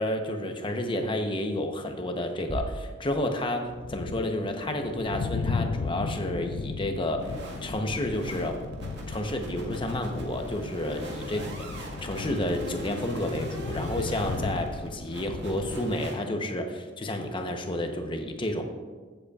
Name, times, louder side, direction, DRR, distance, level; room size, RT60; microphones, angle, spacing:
voice 1, 0.0-8.6 9.1-11.4 12.0-18.6, left 1 dB, 25° left, 4 dB, 0.8 m, -30 dB
sound 1, 2.5-3.9, right 2 dB, 30° right, 0.4 m, -37 dB
sound 2, 3.1-15.8, left 4 dB, 90° left, 0.4 m, -36 dB
sound 3, 7.2-16.1, right 1 dB, 65° right, 1.7 m, -41 dB
15.0 x 7.8 x 2.4 m, 1.5 s
head